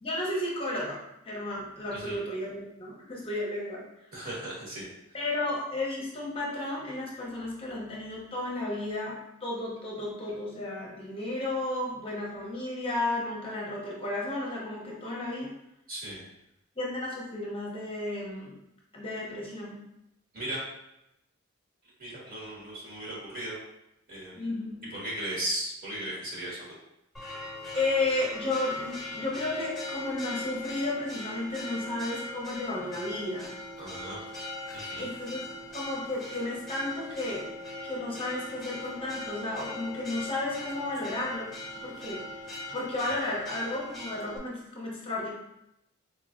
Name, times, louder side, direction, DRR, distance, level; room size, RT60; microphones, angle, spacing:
voice 1, 0.0-3.8 5.1-15.5 16.8-18.5 18.9-19.8 24.4-24.9 27.7-33.5 35.0-37.5 37.8-41.5 41.8-42.2 42.7-45.3, left 2 dB, 25° left, -4 dB, 0.7 m, -33 dB
voice 2, 4.1-4.9 15.9-16.2 20.3-20.6 22.0-23.5 24.1-24.5 24.9-26.6 33.8-34.2 34.7-35.1, right 1 dB, 45° right, -5 dB, 1.4 m, -36 dB
Church bell, 27.1-44.4, left 2 dB, ahead, 1.0 m, -40 dB
4.1 x 3.0 x 2.5 m, 0.85 s
head